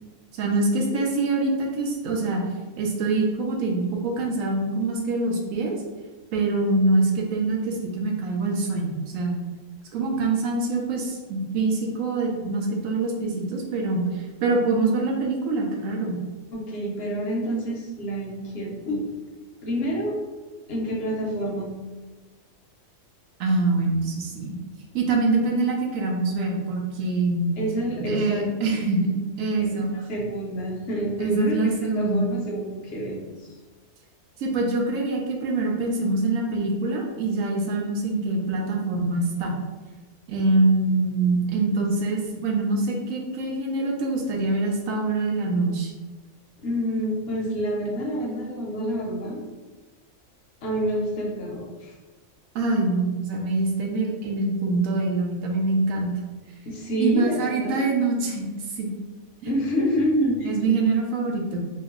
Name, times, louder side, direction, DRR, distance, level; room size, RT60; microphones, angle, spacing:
voice 1, 0.3-2.4 2.8-5.8 6.3-9.4 9.9-16.2 23.4-24.5 24.9-27.6 28.0-29.9 31.2-32.3 34.4-39.6 40.3-45.9 52.5-56.1 57.0-58.5 58.8-58.9 60.5-61.6, right 3 dB, 80° right, -1 dB, 1.1 m, -24 dB
voice 2, 16.5-19.0 19.6-20.2 20.7-21.7 27.6-28.7 30.1-33.5 46.6-49.4 50.6-51.9 56.7-57.8 59.4-60.6, equal, 60° left, -2 dB, 0.7 m, -28 dB
3.0 x 2.1 x 3.6 m, 1.3 s
omnidirectional pair, 1.4 m